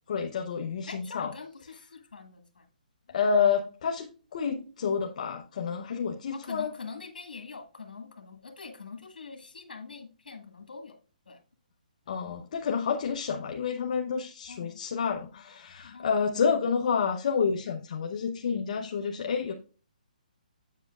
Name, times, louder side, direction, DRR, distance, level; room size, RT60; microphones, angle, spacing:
voice 1, 0.1-1.3 3.1-6.7 12.1-19.5, left 6 dB, 55° left, 3 dB, 1.0 m, -29 dB
voice 2, 0.9-2.7 6.3-11.0 11.3-11.4 12.2-12.5 14.5-14.8 15.9-16.1, left 5 dB, 80° left, 4 dB, 1.7 m, -44 dB
8.4 x 7.7 x 2.4 m, 0.37 s
hypercardioid pair, 150°, 5 cm